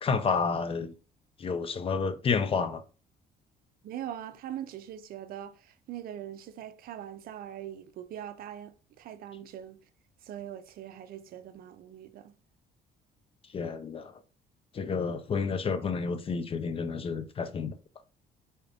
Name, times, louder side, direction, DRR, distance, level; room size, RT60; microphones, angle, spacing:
voice 1, 0.0-0.9 1.4-2.8 13.5-14.1 14.7-17.7, left 5 dB, 35° left, 0.5 m, -30 dB
voice 2, 3.8-9.8 10.2-12.3, right 10 dB, 60° right, 0.5 m, -42 dB
4.1 x 2.5 x 3.3 m
cardioid pair, 110°, 17 cm